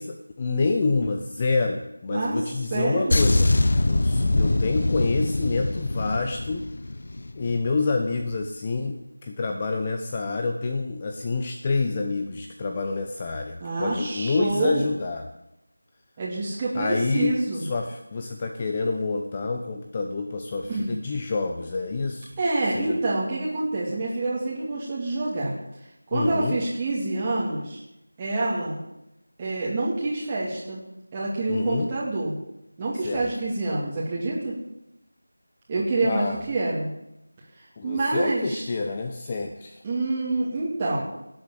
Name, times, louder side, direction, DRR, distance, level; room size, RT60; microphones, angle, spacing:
voice 1, 0.0-3.5 3.8-6.6 7.4-15.2 16.7-22.3 22.7-23.0 26.1-26.6 31.5-31.9 33.0-33.3 36.0-36.4 37.8-39.8, left 3 dB, 20° left, 4 dB, 0.8 m, -27 dB
voice 2, 2.7-3.3 13.6-14.9 16.2-17.6 20.7-20.9 22.4-25.5 26.1-27.8 28.2-28.8 29.4-30.8 31.1-32.3 32.8-34.6 35.7-36.9 37.6-38.7 39.8-41.0, right 2 dB, 15° right, -6 dB, 2.5 m, -27 dB
sound 1, 3.1-7.7 7.9-8.2, left 2 dB, 50° left, 1.0 m, -23 dB
17.0 x 8.3 x 7.7 m, 0.87 s
figure-of-eight pair, 170°, 0 cm